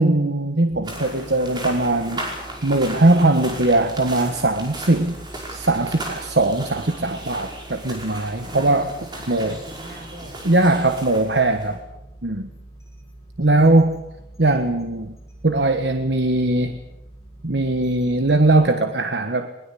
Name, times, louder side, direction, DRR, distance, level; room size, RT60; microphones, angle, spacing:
voice 1, 0.0-2.3 2.6-8.9 9.3-9.6 10.4-11.8 12.2-12.5 13.4-14.0 14.4-15.2 15.4-16.8 17.4-19.5, right 2 dB, 80° right, 8 dB, 1.3 m, -20 dB
sound 1, 0.7-18.7, right 1 dB, 15° left, 4.8 m, -44 dB
sound 2, 0.8-11.8, right 1 dB, 25° right, 5.4 m, -36 dB
voice 2, 8.4-10.3 13.4-14.0, right 1 dB, 55° right, 5 dB, 5.4 m, -42 dB
22.0 x 21.0 x 8.4 m, 0.91 s
head